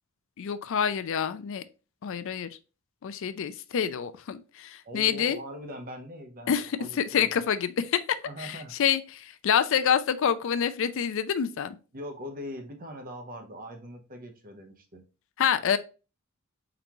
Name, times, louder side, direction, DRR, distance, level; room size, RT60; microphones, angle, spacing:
voice 1, 0.4-1.6 2.0-2.5 3.0-5.4 6.5-8.0 8.4-11.8 15.4-15.8, left 8 dB, 65° left, 0.4 m, -27 dB
voice 2, 4.8-6.5 6.8-7.3 8.3-8.7 11.9-15.0, left 1 dB, 45° right, 0.9 m, -41 dB
4.5 x 3.9 x 2.9 m
head